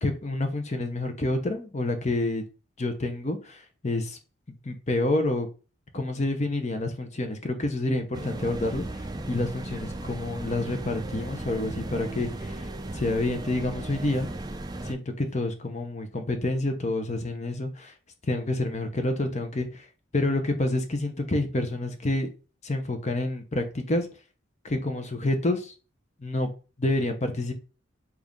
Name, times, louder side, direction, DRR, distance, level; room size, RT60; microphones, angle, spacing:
voice 1, 0.0-2.4 2.8-4.2 4.5-5.5 5.9-14.3 14.8-17.9 18.3-19.9 20.1-22.3 22.6-24.1 24.6-25.7 26.2-26.5 26.8-27.5, left 2 dB, 35° left, 6 dB, 0.9 m, -28 dB
sound 1, 8.1-14.9, right 2 dB, 20° right, 0.6 m, -36 dB
7.3 x 2.7 x 5.2 m, 0.34 s
head